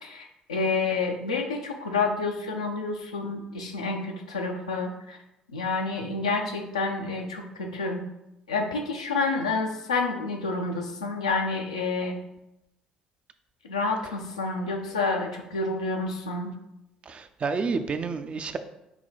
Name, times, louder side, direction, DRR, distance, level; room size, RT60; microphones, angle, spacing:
voice 1, 0.0-5.2 5.5-8.0 8.5-12.2 13.6-16.5, left 3 dB, 90° left, 2 dB, 0.5 m, -29 dB
voice 2, 17.1-18.6, right 4 dB, 35° right, 9 dB, 0.4 m, -29 dB
5.7 x 2.2 x 3.9 m, 0.89 s
hypercardioid pair, 55°, 3 cm